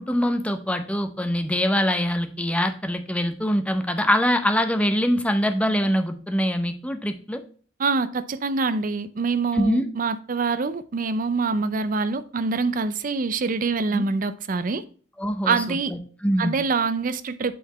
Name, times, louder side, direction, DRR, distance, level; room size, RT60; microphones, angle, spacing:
voice 1, 0.0-7.4 9.5-9.9 13.9-14.0 15.2-16.6, equal, 5° left, 0.6 m, -24 dB
voice 2, 7.8-14.8 15.4-15.9 16.4-17.5, right 4 dB, 45° right, 0.5 m, -25 dB
8.4 x 4.0 x 4.1 m
head